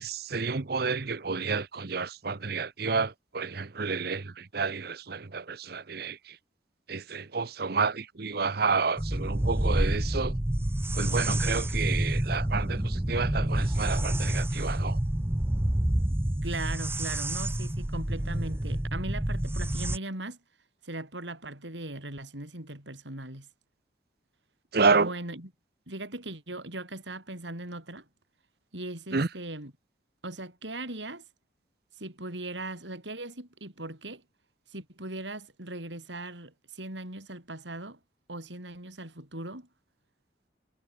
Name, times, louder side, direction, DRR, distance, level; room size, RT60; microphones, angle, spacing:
voice 1, 0.0-6.2 6.9-10.3 11.0-15.0 24.7-25.1 29.1-29.3, right 4 dB, 60° right, 0.9 m, -29 dB
sound 1, 9.0-20.0, right 1 dB, 15° right, 0.7 m, -28 dB
voice 2, 16.4-20.4 20.8-23.5 24.8-25.5 25.9-28.1 28.7-29.7 30.2-31.2 32.0-34.2 34.7-38.0 38.3-39.7, right 2 dB, 85° right, 8.0 m, -39 dB
head